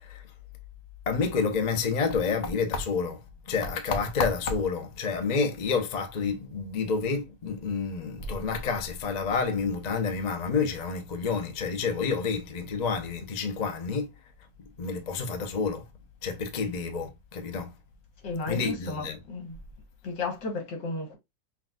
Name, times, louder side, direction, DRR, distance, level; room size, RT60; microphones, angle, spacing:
voice 1, 1.1-3.2 3.5-14.1 14.8-15.8 16.2-17.7 18.5-19.2, left 5 dB, 55° left, 0.4 m, -29 dB
voice 2, 18.2-19.6 20.0-21.2, left 3 dB, 75° left, 2.0 m, -33 dB
5.9 x 2.6 x 2.4 m
omnidirectional pair, 2.0 m